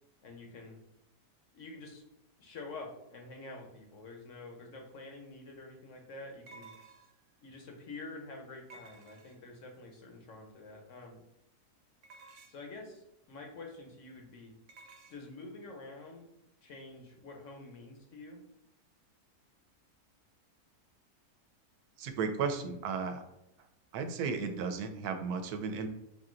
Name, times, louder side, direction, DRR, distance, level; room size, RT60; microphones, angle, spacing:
voice 1, 0.2-0.8 1.5-2.0 2.4-6.7 7.4-11.2 12.5-14.5 15.1-16.3 16.6-18.4, left 3 dB, 60° left, 2 dB, 1.0 m, -47 dB
sound 1, 4.9-5.0 6.5-7.3 8.7-9.6 12.0-12.8 14.7-15.2, right 4 dB, 60° right, 0.9 m, -54 dB
voice 2, 22.0-23.2 23.9-25.9, right 5 dB, 85° right, 7 dB, 1.1 m, -34 dB
3.7 x 2.7 x 3.8 m, 0.85 s
omnidirectional pair, 1.6 m